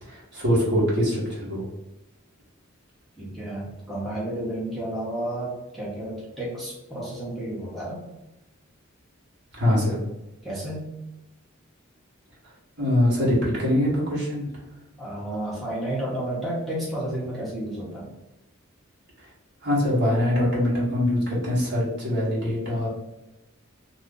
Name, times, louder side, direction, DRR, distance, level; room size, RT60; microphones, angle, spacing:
voice 1, 0.0-1.6 9.5-10.0 12.8-14.6 19.2-19.3 19.6-22.9, left 1 dB, 55° right, -6 dB, 1.3 m, -23 dB
voice 2, 3.2-8.0 10.4-10.9 15.0-18.1, right 1 dB, ahead, -8 dB, 0.9 m, -31 dB
2.6 x 2.5 x 3.7 m, 0.95 s
head